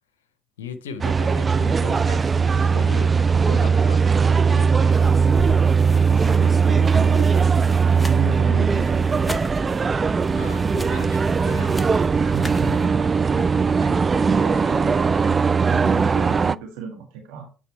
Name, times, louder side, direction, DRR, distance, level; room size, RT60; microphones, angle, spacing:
voice 1, 0.6-4.2 4.5-5.4 10.3-12.0 14.5-14.7, left 6 dB, 80° left, 0.6 m, -38 dB
sound 1, 1.0-16.6, right 5 dB, 30° right, 0.3 m, -19 dB
sound 2, 4.9-12.9, left 1 dB, 5° left, 1.0 m, -37 dB
voice 2, 6.1-9.3 12.2-13.5 13.8-14.0 14.3-15.1 15.7-17.5, right 6 dB, 70° right, 1.7 m, -33 dB
8.6 x 3.7 x 4.3 m
figure-of-eight pair, 50°, 0 cm